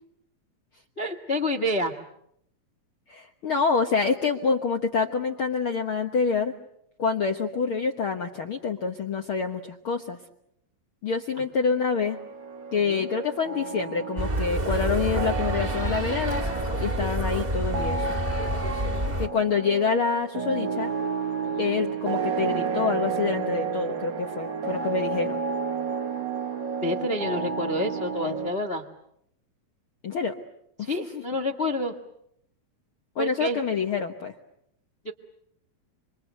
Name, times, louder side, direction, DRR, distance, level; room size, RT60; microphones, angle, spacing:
voice 1, 1.0-1.9 12.8-13.1 18.8-19.1 21.4-21.7 26.8-28.8 30.8-31.9 33.2-33.6 35.0-35.1, left 1 dB, 85° left, 7 dB, 0.5 m, -29 dB
voice 2, 3.1-6.5 7.0-10.2 11.0-12.2 12.7-16.4 16.8-18.2 19.2-20.9 21.6-25.4 30.0-30.3 30.8-31.2 33.1-34.3, left 5 dB, 60° left, 4 dB, 1.5 m, -27 dB
sound 1, 11.9-28.5, right 5 dB, 70° right, 1.1 m, -31 dB
sound 2, 14.2-19.3, right 1 dB, 15° right, 1.6 m, -28 dB
27.5 x 26.0 x 8.0 m, 0.76 s
omnidirectional pair, 4.0 m